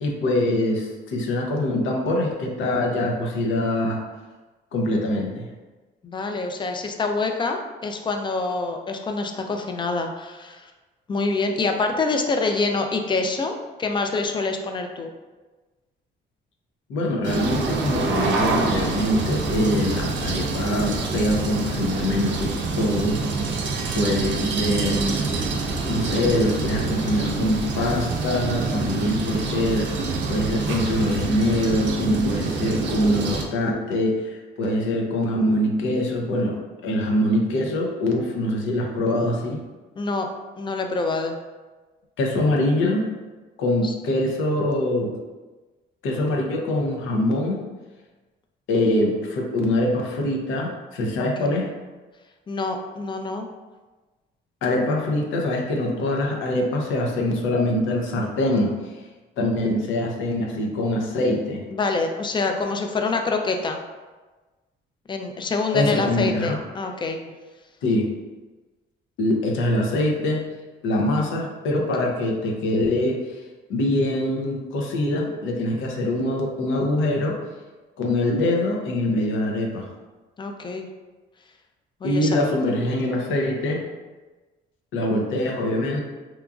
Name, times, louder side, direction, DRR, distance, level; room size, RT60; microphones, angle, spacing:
voice 1, 0.0-4.0 4.7-5.5 16.9-23.3 23.9-25.0 25.8-29.9 30.3-39.6 42.2-43.1 43.6-45.2 46.0-47.7 48.7-51.7 54.6-58.9 59.4-61.7 65.7-66.6 67.8-68.1 69.2-70.5 70.8-73.3 73.7-77.4 78.0-79.9 82.0-83.8 84.9-86.0, left 1 dB, 80° left, 0 dB, 0.6 m, -24 dB
voice 2, 6.0-10.7 11.1-15.1 40.0-40.3 40.6-41.3 43.8-43.9 51.2-51.5 52.5-53.5 61.7-63.8 65.1-67.2 80.4-80.9 82.0-82.3, left 3 dB, 25° left, 4 dB, 0.3 m, -26 dB
sound 1, 17.2-33.4, right 3 dB, 65° right, 0.4 m, -26 dB
2.9 x 2.3 x 2.3 m, 1.2 s
cardioid pair, 90°, 20 cm